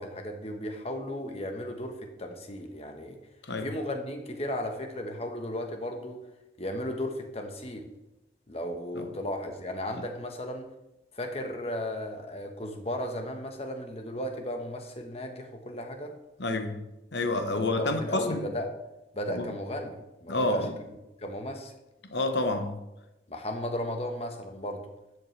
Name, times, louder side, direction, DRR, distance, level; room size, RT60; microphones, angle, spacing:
voice 1, 0.0-3.2 3.6-6.2 6.6-7.9 8.5-10.7 11.1-16.1 17.5-18.7 19.1-21.7 23.3-24.9, left 1 dB, 35° left, 1.3 m, -35 dB
voice 2, 16.4-16.8 17.1-18.4 19.3-19.5 20.3-20.7 22.0-22.8, left 2 dB, 65° left, 1.2 m, -29 dB
12.5 x 8.0 x 3.4 m
head